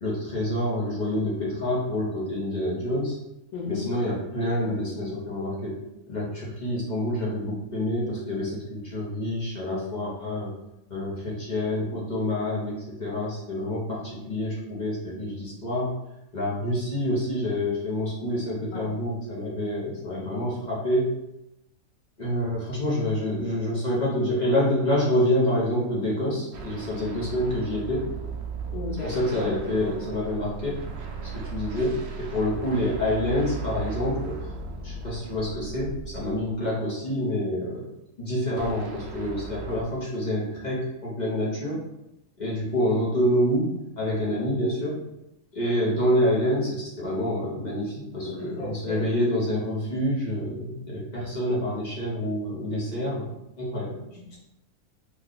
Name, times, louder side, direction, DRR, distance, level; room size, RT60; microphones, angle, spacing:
voice 1, 0.0-3.1 3.7-5.8 6.1-10.5 10.9-12.7 13.0-15.9 16.3-21.1 22.2-28.1 29.0-30.8 31.3-34.4 34.8-37.8 38.2-41.8 42.4-45.0 45.5-53.3 53.6-53.9, left 1 dB, 40° left, -6 dB, 0.8 m, -27 dB
voice 2, 3.5-3.9 18.7-18.9 28.7-29.2 48.2-49.0 54.1-54.4, left 3 dB, 80° left, -6 dB, 1.3 m, -35 dB
sound 1, 26.5-36.8 38.6-39.8, right 5 dB, 65° right, 0.6 m, -37 dB
3.1 x 2.3 x 3.8 m, 0.88 s
omnidirectional pair, 1.5 m